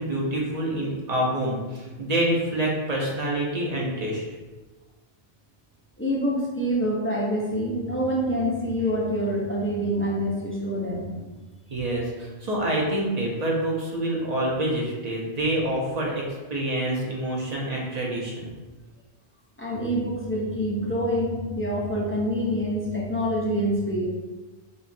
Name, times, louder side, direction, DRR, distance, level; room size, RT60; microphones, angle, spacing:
voice 1, 0.0-4.2 11.7-16.2 16.5-18.5, right 1 dB, 35° right, -3 dB, 1.0 m, -27 dB
voice 2, 6.0-11.2 19.6-24.1, equal, 15° left, -5 dB, 0.6 m, -26 dB
6.6 x 2.4 x 2.7 m, 1.2 s
omnidirectional pair, 1.2 m